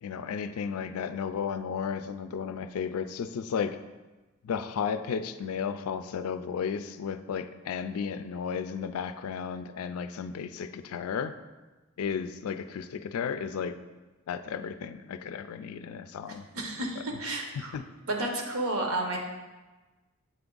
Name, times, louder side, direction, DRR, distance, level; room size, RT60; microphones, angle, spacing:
voice 1, 0.0-3.8 4.4-11.3 12.0-13.7 14.3-16.4 17.6-17.8, left 6 dB, 80° left, 10 dB, 0.3 m, -33 dB
voice 2, 16.5-17.7 18.1-19.2, right 2 dB, 80° right, 2 dB, 0.9 m, -31 dB
7.4 x 3.5 x 3.8 m, 1.2 s
head